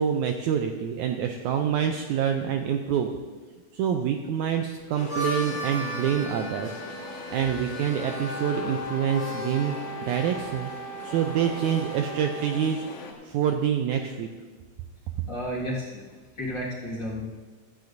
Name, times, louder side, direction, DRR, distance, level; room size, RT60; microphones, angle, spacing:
voice 1, 0.0-3.1 3.7-6.8 7.3-9.8 10.1-10.7 11.0-12.8 13.2-14.3, right 8 dB, 90° right, 4 dB, 1.7 m, -26 dB
Harmonica, 4.8-9.7, equal, 20° left, 2.3 m, -36 dB
sound 1, 5.0-13.1, left 4 dB, 60° left, 2.8 m, -41 dB
Wind instrument woodwind instrument, 8.1-12.9, right 1 dB, 65° right, 3.2 m, -38 dB
voice 2, 15.2-16.0 16.4-17.3, equal, 40° left, -6 dB, 2.0 m, -32 dB
15.0 x 13.5 x 2.6 m, 1.4 s
omnidirectional pair, 4.1 m